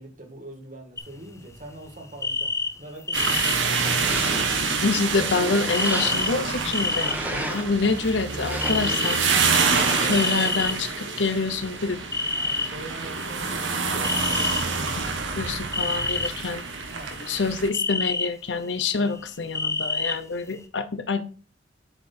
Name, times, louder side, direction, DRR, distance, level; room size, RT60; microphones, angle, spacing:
voice 1, 0.0-2.5 2.8-3.7 7.8-8.1 8.6-9.0 9.7-10.6 12.3-15.6 16.9-17.2 18.9-19.2, right 2 dB, 45° right, 3 dB, 1.9 m, -43 dB
sound 1, 1.0-1.5 1.8-1.9 2.1-3.5 4.3-4.4 5.6-6.3 6.6-7.1 7.5-8.4 8.6-9.2 10.1-11.2 12.1-12.7 13.3-13.4 14.0-14.6 15.7-16.3 16.7-17.4 17.7-18.3 18.7-20.1 20.5-20.6, left 4 dB, 15° left, 0.7 m, -27 dB
sound 2, 3.1-17.7, right 4 dB, 85° right, 1.2 m, -27 dB
sound 3, 3.7-4.6 5.1-6.4 6.9-7.8 8.3-9.1 9.7-10.2, right 1 dB, 10° right, 1.1 m, -34 dB
voice 2, 4.7-9.4 10.0-12.0 15.0-15.1 15.4-16.6 17.3-21.2, left 4 dB, 70° left, 10 dB, 0.8 m, -26 dB
7.7 x 4.7 x 4.3 m, 0.36 s
head